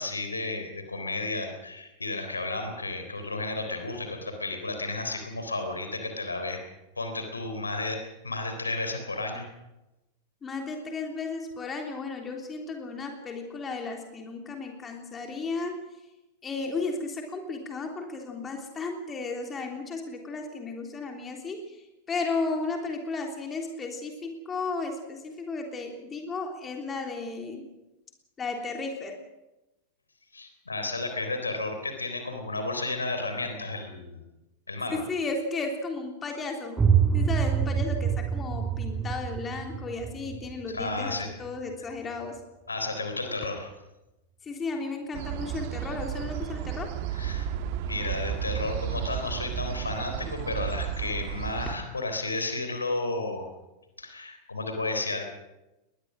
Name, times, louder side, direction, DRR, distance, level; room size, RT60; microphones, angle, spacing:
voice 1, 0.0-6.6 7.0-9.5 30.3-34.2 34.7-35.0 40.7-41.3 42.7-43.7 47.1-47.5 47.9-53.5 54.0-55.2, left 2 dB, 80° left, 5 dB, 3.8 m, -32 dB
voice 2, 10.4-15.8 16.4-21.8 22.1-27.6 28.4-29.2 34.9-36.8 37.1-42.4 44.4-46.9, left 3 dB, 20° left, 3 dB, 3.3 m, -34 dB
sound 1, 36.8-42.4, right 7 dB, 15° right, 3.7 m, -27 dB
sound 2, 45.1-51.7, right 10 dB, 50° right, 1.7 m, -33 dB
22.0 x 20.5 x 6.4 m, 0.99 s
figure-of-eight pair, 90°, 0 cm